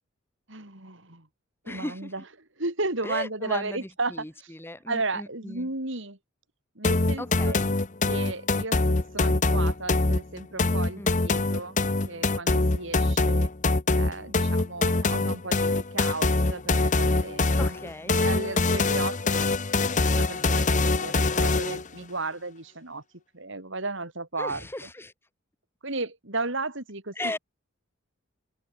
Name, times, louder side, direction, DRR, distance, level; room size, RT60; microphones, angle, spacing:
voice 1, 0.5-1.3 1.6-4.5 4.9-6.2 6.7-7.6 8.1-11.8 12.1-13.5 13.9-17.8 18.1-19.5 20.1-23.0 23.3-24.9 25.8-27.4, right 3 dB, 60° right, 5.0 m, -34 dB
voice 2, 1.7-2.1 3.0-5.7 7.2-7.7 11.0-11.1 17.6-18.2 24.4-25.1 27.2-27.4, left 1 dB, 10° left, 2.1 m, -37 dB
sound 1, 6.8-21.9, left 3 dB, 35° left, 1.1 m, -24 dB
head